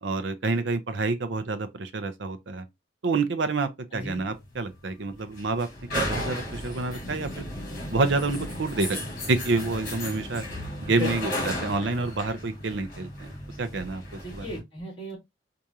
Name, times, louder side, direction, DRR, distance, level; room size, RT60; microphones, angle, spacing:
voice 1, 0.0-2.6 3.0-5.7 5.9-7.4 7.9-9.0 9.3-10.4 10.8-11.3 11.6-13.3 13.6-14.0 14.3-14.5, right 3 dB, 80° right, 0.6 m, -28 dB
sound 1, 4.0-14.6, left 1 dB, 50° left, 2.2 m, -35 dB
voice 2, 14.2-15.2, left 2 dB, 25° left, 2.8 m, -35 dB
4.7 x 2.6 x 2.7 m
head